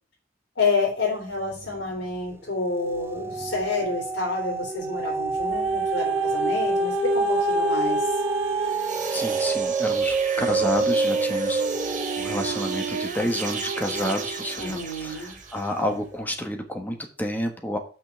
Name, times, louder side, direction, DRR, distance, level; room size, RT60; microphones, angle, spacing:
voice 1, 0.5-8.2 14.6-15.4, left 3 dB, 75° left, -4 dB, 3.2 m, -29 dB
sound 1, 1.4-2.0 2.3-14.8 15.4-15.5, right 3 dB, 15° right, 0.4 m, -27 dB
sound 2, 5.5-14.6 15.3-15.4, right 4 dB, 85° right, 0.5 m, -32 dB
sound 3, 8.5-15.9, right 5 dB, 45° right, 1.4 m, -36 dB
voice 2, 9.1-17.8, left 1 dB, 10° left, 4 dB, 1.4 m, -30 dB
6.1 x 5.7 x 6.9 m, 0.39 s
head